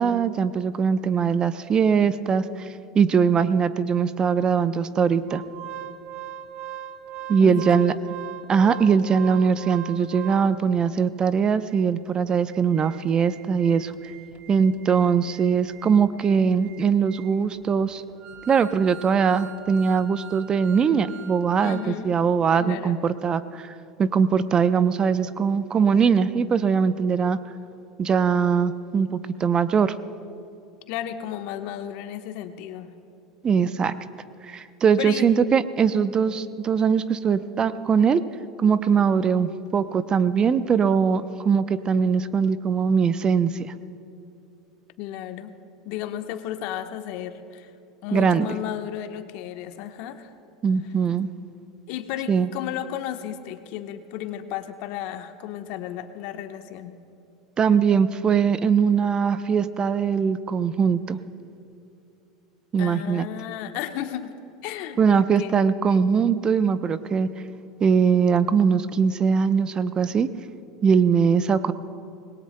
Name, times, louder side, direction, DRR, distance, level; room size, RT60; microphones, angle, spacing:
voice 1, 0.0-2.7 2.9-5.4 7.3-7.9 8.5-13.9 14.5-18.0 18.5-27.4 28.0-30.0 33.4-33.9 34.4-38.2 38.6-43.7 48.1-48.5 50.6-51.3 52.3-52.5 57.6-61.2 62.7-63.3 65.0-67.3 67.8-70.3 70.8-71.7, right 6 dB, 30° right, 13 dB, 0.6 m, -21 dB
Organ, 5.3-10.8 11.3-11.4 11.7-11.8 12.3-21.9 22.2-22.3, right 10 dB, 50° right, 1.1 m, -41 dB
voice 2, 7.4-8.0 21.6-22.2 22.6-23.0 30.9-32.9 35.0-35.3 45.0-45.5 45.8-47.7 48.0-50.3 51.9-57.0 62.8-64.4 64.6-65.6 65.9-66.1, left 11 dB, 60° left, 7 dB, 1.1 m, -33 dB
26.5 x 21.0 x 2.2 m, 2.7 s
hypercardioid pair, 85°, 3 cm